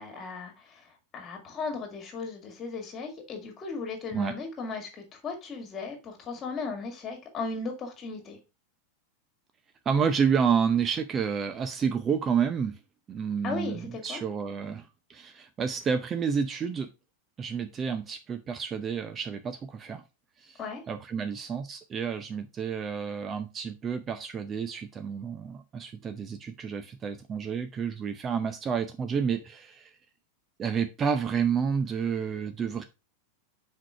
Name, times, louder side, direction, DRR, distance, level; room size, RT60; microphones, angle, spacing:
voice 1, 0.0-8.4 13.4-14.2 20.6-20.8, left 4 dB, 25° left, 2.3 m, -36 dB
voice 2, 9.9-12.8 13.1-16.9 17.4-20.0 20.4-20.6 20.9-29.9 30.6-32.8, right 6 dB, 25° right, 0.6 m, -30 dB
5.9 x 4.6 x 4.7 m
figure-of-eight pair, 90°, 0 cm